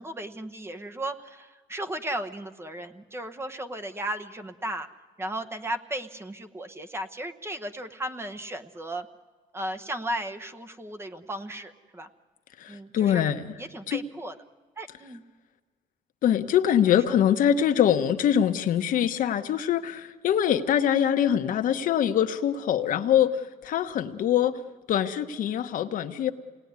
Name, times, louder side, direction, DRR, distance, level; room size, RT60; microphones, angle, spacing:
voice 1, 0.0-4.9 5.2-9.1 9.5-12.1 12.7-13.2 13.6-14.3 14.8-15.2, right 1 dB, 15° right, 8 dB, 1.0 m, -35 dB
voice 2, 12.6-13.4 13.9-14.0 16.2-24.6 24.9-26.3, left 9 dB, 60° left, 8 dB, 1.1 m, -23 dB
28.0 x 19.0 x 9.6 m, 1.5 s
cardioid pair, 135°, 15 cm